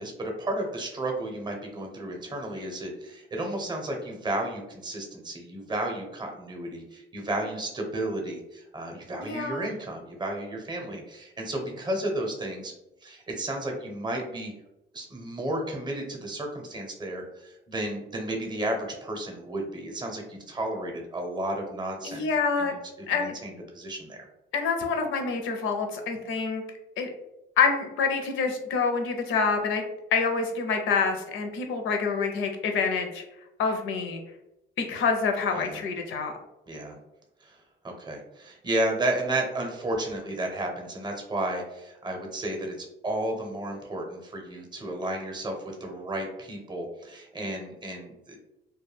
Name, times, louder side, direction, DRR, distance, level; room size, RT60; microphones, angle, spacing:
voice 1, 0.0-12.7 13.0-14.5 14.9-22.3 22.6-24.2 35.5-35.8 36.7-37.0 37.4-48.4, right 1 dB, 20° right, 2 dB, 0.6 m, -33 dB
voice 2, 9.2-9.7 22.0-22.8 23.1-23.3 24.5-26.6 27.0-27.1 27.6-29.8 30.1-33.2 33.6-34.2 34.8-36.3, left 5 dB, 80° left, 4 dB, 0.5 m, -27 dB
2.2 x 2.1 x 3.2 m, 0.91 s
cardioid pair, 90°, 20 cm